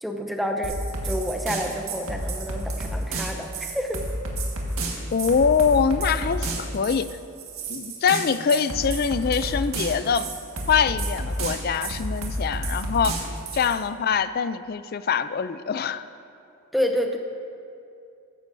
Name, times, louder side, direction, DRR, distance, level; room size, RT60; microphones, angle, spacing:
voice 1, 0.0-0.8 1.0-4.0 16.7-17.2, equal, ahead, 3 dB, 0.7 m, -28 dB
sound 1, 0.6-13.8, right 2 dB, 70° right, 1.7 m, -31 dB
voice 2, 5.1-7.1 7.7-10.3 10.7-13.2 13.5-16.1, left 6 dB, 40° left, 13 dB, 0.3 m, -23 dB
14.5 x 12.5 x 2.7 m, 2.5 s
head